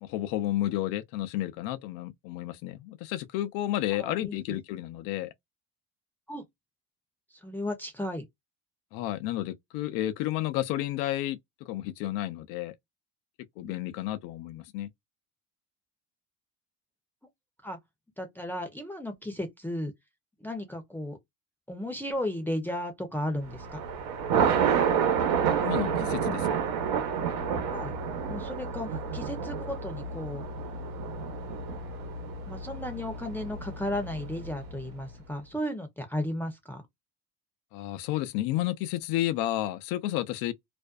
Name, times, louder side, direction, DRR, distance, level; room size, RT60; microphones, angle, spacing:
voice 1, 0.0-5.3 8.9-12.7 13.6-14.9 25.6-26.7 37.7-40.5, left 14 dB, 75° left, 0.5 m, -31 dB
voice 2, 3.9-4.4 6.3-6.4 7.4-8.2 13.6-13.7 17.6-17.8 18.2-19.9 20.4-21.2 21.7-23.8 27.7-27.9 28.3-30.4 32.5-36.8, left 1 dB, 5° left, 0.6 m, -34 dB
Thunder, 23.5-34.8, right 7 dB, 75° right, 1.0 m, -29 dB
2.5 x 2.1 x 2.3 m
cardioid pair, 115°, 34 cm